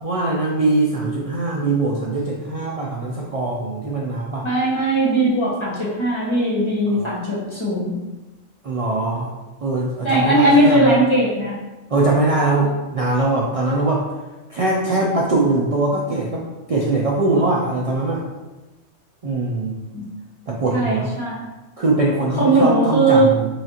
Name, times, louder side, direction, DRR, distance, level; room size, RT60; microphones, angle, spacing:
voice 1, 0.0-4.5 6.9-7.2 8.6-9.3 9.6-11.0 11.9-14.0 14.5-18.2 19.2-19.7 20.5-21.1 21.8-23.5, right 2 dB, 65° right, -3 dB, 0.3 m, -21 dB
voice 2, 4.4-7.9 10.0-11.5 19.9-20.0 20.7-21.4 22.3-23.3, right 1 dB, 25° left, -7 dB, 1.2 m, -18 dB
5.9 x 2.4 x 2.8 m, 1.1 s
omnidirectional pair, 1.3 m